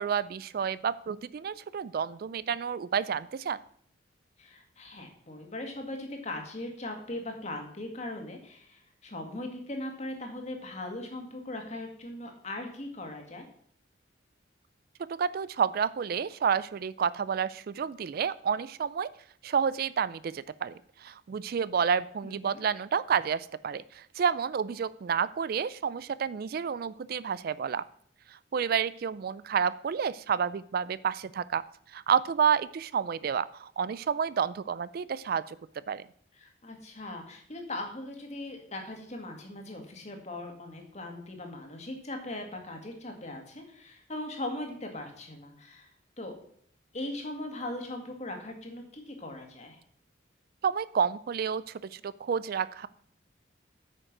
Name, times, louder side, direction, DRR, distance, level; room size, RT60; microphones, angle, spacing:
voice 1, 0.0-3.6 15.2-19.1 19.4-27.8 28.5-31.6 31.9-35.6 35.9-36.0 50.6-52.9, right 7 dB, 50° right, 18 dB, 0.3 m, -30 dB
voice 2, 4.4-13.5 22.2-22.6 36.3-45.9 46.2-46.4 46.9-49.8, left 1 dB, 35° left, 3 dB, 2.0 m, -39 dB
9.1 x 6.4 x 6.0 m, 0.63 s
head